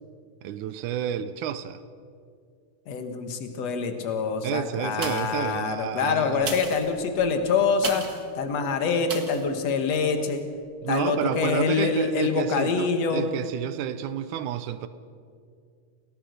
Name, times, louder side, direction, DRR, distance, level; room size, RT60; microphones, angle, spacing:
voice 1, 0.4-1.8 4.4-6.6 10.8-14.9, right 10 dB, 75° right, 13 dB, 2.0 m, -30 dB
voice 2, 2.9-8.0 8.4-10.4 10.9-13.3, left 5 dB, 55° left, 6 dB, 2.5 m, -25 dB
sound 1, 4.9-5.5 6.3-8.3 9.1-9.5 10.0-10.1, right 4 dB, 35° right, 1.6 m, -35 dB
28.5 x 17.5 x 6.6 m, 2.3 s
omnidirectional pair, 3.9 m